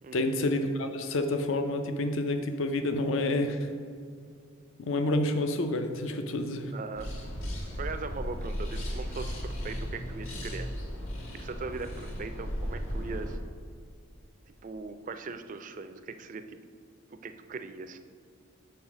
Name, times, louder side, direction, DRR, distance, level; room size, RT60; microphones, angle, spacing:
voice 1, 0.1-3.7 4.8-6.7, left 2 dB, 70° left, 7 dB, 0.5 m, -29 dB
voice 2, 6.7-7.1 7.8-10.7 11.3-13.4 14.6-16.6 17.1-18.0, right 4 dB, 40° right, 9 dB, 0.4 m, -40 dB
sound 1, 7.0-13.4, equal, 90° left, 1.4 m, -36 dB
5.5 x 4.6 x 6.0 m, 2.1 s
head